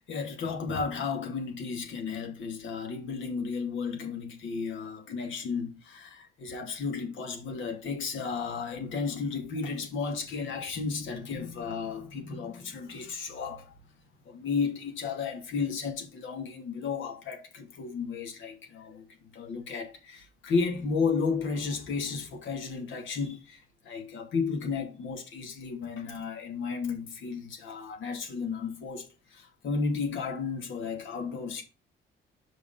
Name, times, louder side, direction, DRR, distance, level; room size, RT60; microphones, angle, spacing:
voice 1, 0.0-13.7 14.2-19.1 19.3-31.6, left 5 dB, 75° left, 2.4 m, -33 dB
6.1 x 5.3 x 5.4 m
cardioid pair, 90°, 20 cm